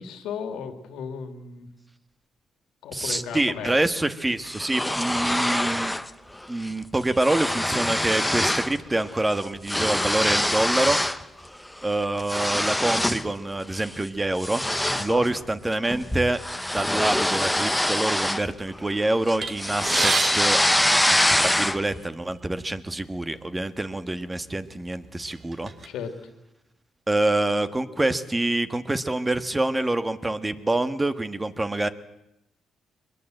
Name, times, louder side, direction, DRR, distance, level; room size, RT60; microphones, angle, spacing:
voice 1, 0.0-1.7 2.8-3.8 14.9-15.3 25.8-26.2, left 7 dB, 85° left, 7 dB, 2.7 m, -35 dB
voice 2, 2.9-5.9 6.5-11.0 11.8-14.6 15.0-20.6 21.4-25.7 27.1-31.9, right 2 dB, 15° right, 10 dB, 1.4 m, -26 dB
sound 1, 4.4-6.1 6.4-6.7 6.9-8.8 9.1-11.2 11.7-13.3 13.7-14.0 14.4-18.9 19.3-22.0, left 1 dB, 5° left, 1.0 m, -24 dB
sound 2, 19.4-21.7 22.6-22.7 23.0-23.2 24.1-24.2 24.7-25.9, right 4 dB, 40° right, 2.2 m, -30 dB
23.5 x 21.0 x 8.0 m, 0.90 s
cardioid pair, 90°, 0 cm